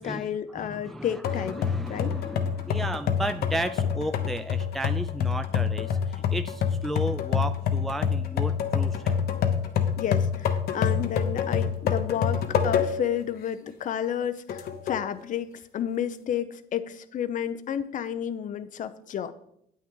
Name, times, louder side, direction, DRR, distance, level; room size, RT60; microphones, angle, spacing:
voice 1, 0.0-2.1 10.0-19.3, left 9 dB, 50° left, 12 dB, 0.7 m, -31 dB
voice 2, 0.6-9.2, right 1 dB, ahead, 10 dB, 0.3 m, -34 dB
sound 1, 1.2-13.2 13.6-13.7 14.5-15.1, left 7 dB, 65° left, 1.0 m, -27 dB
9.3 x 8.6 x 3.7 m, 0.73 s
cardioid pair, 110°, 17 cm